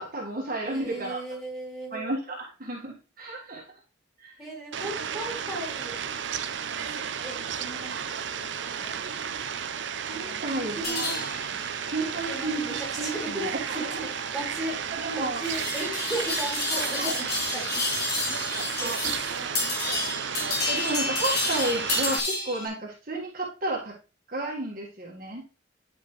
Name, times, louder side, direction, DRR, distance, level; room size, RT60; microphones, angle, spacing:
voice 1, 0.0-1.2 1.9-3.7 4.2-4.4 9.7-11.2 11.9-14.0 14.6-15.4 16.7-17.1 20.7-23.9 24.3-25.4, right 2 dB, 45° right, -2 dB, 1.5 m, -32 dB
voice 2, 0.6-2.0 4.4-6.0 6.8-6.9 7.2-9.0 10.1-11.6 12.3-19.5, right 1 dB, ahead, -4 dB, 2.8 m, -37 dB
Fowl, 4.7-22.2, right 7 dB, 65° right, 0.5 m, -33 dB
sound 1, 10.8-22.7, left 2 dB, 50° left, 2.1 m, -31 dB
9.8 x 5.1 x 3.1 m, 0.33 s
head